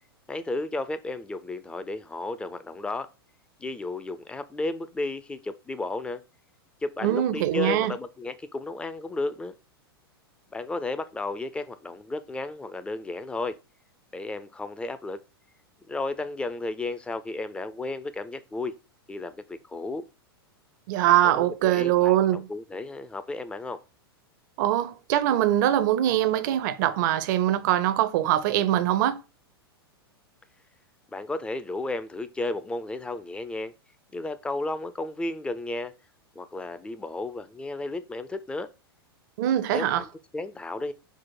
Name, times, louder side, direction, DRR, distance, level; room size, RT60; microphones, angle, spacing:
voice 1, 0.3-3.1 3.6-6.2 6.8-9.5 10.5-13.6 14.1-15.2 15.9-18.7 19.1-20.0 21.1-23.8 31.1-33.7 34.1-35.9 36.4-38.7 39.7-40.1 40.3-40.9, left 2 dB, 10° left, 0.3 m, -33 dB
voice 2, 7.0-7.9 20.9-22.5 24.6-29.2 39.4-40.0, right 12 dB, 50° right, 0.5 m, -23 dB
4.7 x 2.0 x 4.2 m
figure-of-eight pair, 100°, 13 cm